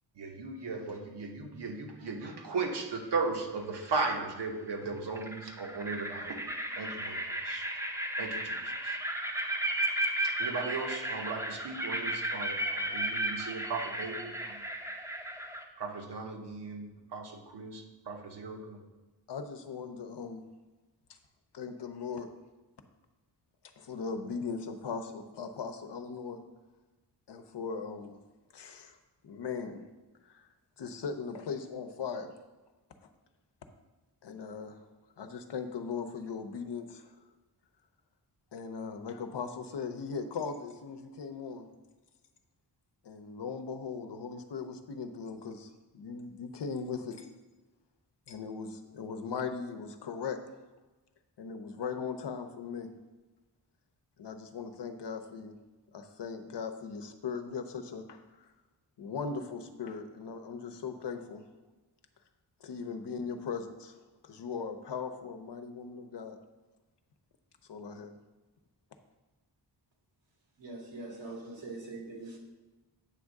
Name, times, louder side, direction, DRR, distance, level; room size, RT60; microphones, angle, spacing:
voice 1, 0.1-6.4 6.8-7.7 8.2-8.6 8.8-9.0 10.2-14.7 15.8-18.8, right 4 dB, 70° right, 2 dB, 1.2 m, -37 dB
sound 1, 2.7-3.2 4.7-4.8 5.1-15.6, right 1 dB, 5° right, 0.6 m, -34 dB
voice 2, 19.3-20.4 21.5-22.3 23.8-26.4 27.3-28.2 28.5-29.0 29.2-29.8 30.2-30.5 30.8-32.3 34.2-34.8 35.2-37.1 38.5-41.7 43.0-47.3 48.3-50.4 51.4-52.9 54.2-55.5 55.9-58.5 59.0-61.4 62.6-64.0 64.2-66.4 67.7-68.2, left 5 dB, 70° left, 7 dB, 0.8 m, -39 dB
voice 3, 70.6-72.4, right 2 dB, 85° right, -1 dB, 2.2 m, -43 dB
8.9 x 3.6 x 6.5 m, 1.2 s
wide cardioid pair, 145°, 42 cm